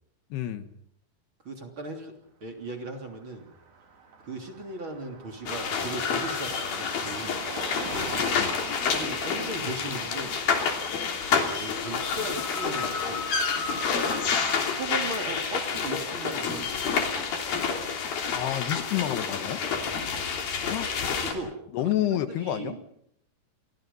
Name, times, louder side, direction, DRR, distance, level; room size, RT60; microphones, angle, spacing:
voice 1, 0.3-0.7 8.1-8.6 18.3-19.6 20.7-20.9 21.7-22.8, left 12 dB, 85° left, 10 dB, 3.4 m, -29 dB
voice 2, 1.4-2.1 2.4-3.5 4.2-7.5 8.8-10.4 11.6-13.3 14.7-17.1 19.8-20.0 21.2-22.8, right 2 dB, 35° right, 3 dB, 3.5 m, -37 dB
Car passing by, 2.8-2.9 3.1-14.1, right 5 dB, 65° right, 5.3 m, -44 dB
sound 1, 5.5-21.3, left 6 dB, 65° left, 4.8 m, -29 dB
30.0 x 23.5 x 5.6 m, 0.72 s
omnidirectional pair, 4.6 m